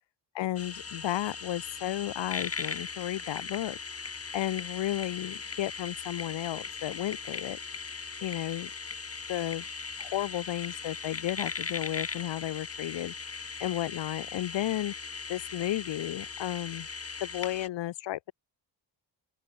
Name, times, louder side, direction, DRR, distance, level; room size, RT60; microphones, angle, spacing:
voice 1, 0.3-3.8 4.3-7.6 8.2-8.7 9.3-9.6 10.0-13.1 13.6-14.9 15.3-16.9 17.2-18.3, left 14 dB, 80° left, 1.5 m, -33 dB
sound 1, 0.6-17.7, left 4 dB, 35° left, 6.2 m, -39 dB
open air
cardioid pair, 90°, 43 cm